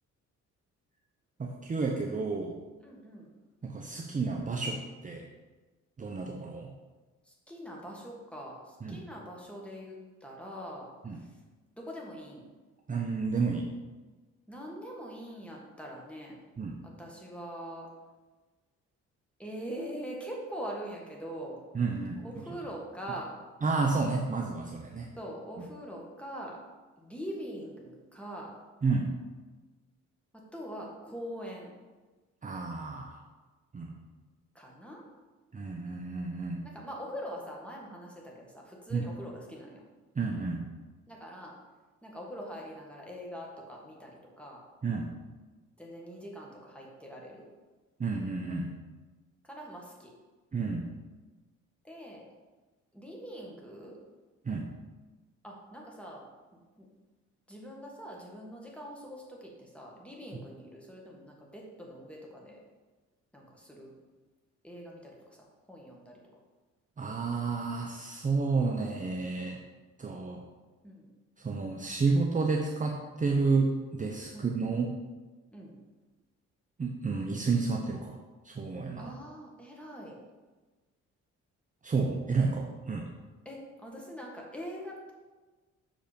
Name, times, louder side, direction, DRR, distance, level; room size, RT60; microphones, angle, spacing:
voice 1, 1.4-2.6 3.6-5.2 6.0-6.7 8.8-9.0 11.1-11.2 12.9-13.7 16.6-16.7 21.7-22.2 23.6-25.1 28.8-29.1 32.4-33.2 33.7-34.0 35.5-36.6 38.9-39.1 40.2-40.6 44.8-45.2 48.0-48.7 50.5-50.9 54.4-54.7 67.0-69.6 70.0-70.4 71.4-74.9 76.8-78.2 78.4-79.1 81.8-83.1, right 4 dB, 25° right, 1 dB, 0.7 m, -30 dB
voice 2, 2.8-3.3 7.2-11.4 11.8-12.5 14.5-16.4 16.8-17.9 19.4-21.6 22.2-23.4 25.2-26.6 27.0-28.6 30.5-31.7 34.5-35.0 36.6-39.8 41.1-41.5 42.0-44.6 45.8-47.4 49.4-50.1 51.8-52.2 52.9-54.0 55.4-56.2 56.8-56.9 57.5-62.6 63.3-63.9 64.6-66.2 70.8-71.1 74.3-74.8 75.5-75.8 79.0-80.2 83.5-85.0, equal, 5° left, -2 dB, 1.9 m, -43 dB
6.3 x 5.1 x 5.2 m, 1.3 s
cardioid pair, 90°, 30 cm